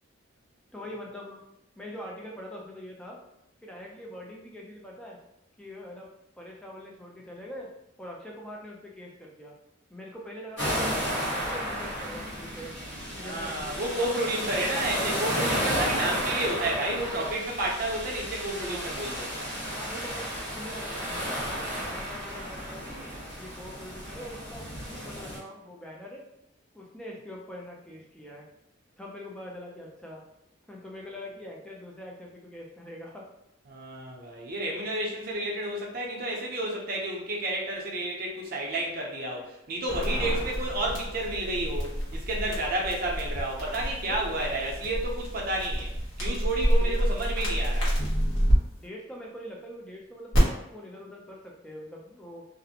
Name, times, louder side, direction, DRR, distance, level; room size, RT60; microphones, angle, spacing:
voice 1, 0.7-1.4 1.8-3.2 3.6-5.2 5.6-6.1 6.4-7.7 8.0-9.5 9.9-11.0 11.3-12.8 13.2-14.1 15.7-15.9 18.6-18.9 19.8-20.3 20.5-23.0 23.4-24.7 25.0-26.2 26.7-28.5 29.0-30.2 30.7-33.3 44.0-44.5 46.7-47.0 48.8-52.5, equal, 5° left, -2 dB, 0.4 m, -43 dB
sound 1, 10.6-25.4, equal, 60° left, 1.2 m, -33 dB
voice 2, 13.2-19.5 33.7-45.9 46.2-47.9, right 1 dB, 50° right, -2 dB, 0.6 m, -31 dB
sound 2, 39.9-48.6 50.3-50.4, equal, 85° left, 1.0 m, -28 dB
2.5 x 2.0 x 2.8 m, 0.85 s
head